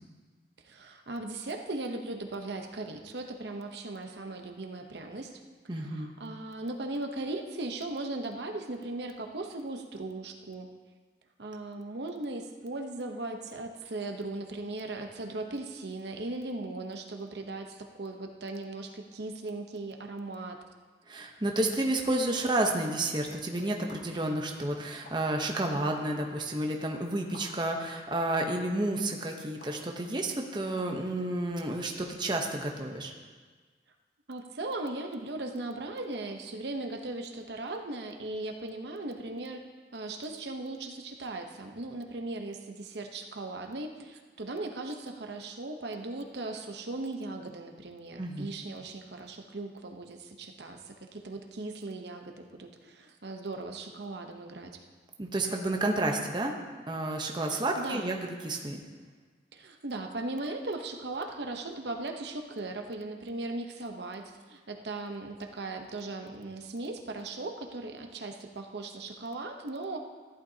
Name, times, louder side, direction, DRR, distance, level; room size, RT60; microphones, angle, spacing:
voice 1, 0.6-5.3 5.8-10.7 11.4-20.6 34.3-39.7 39.9-54.8 57.5-58.2 59.5-70.0, right 2 dB, 70° right, 4 dB, 0.9 m, -38 dB
voice 2, 5.7-6.1 21.1-33.1 48.2-48.5 55.2-56.5 56.9-58.8, right 1 dB, 25° right, 2 dB, 0.9 m, -31 dB
sound 1, 23.9-24.0 25.0-25.1 26.2-26.3 27.3-27.4 28.5-28.6 29.6-29.7 30.8-30.9, left 2 dB, 70° left, 2.1 m, -49 dB
14.5 x 11.5 x 2.8 m, 1.4 s
head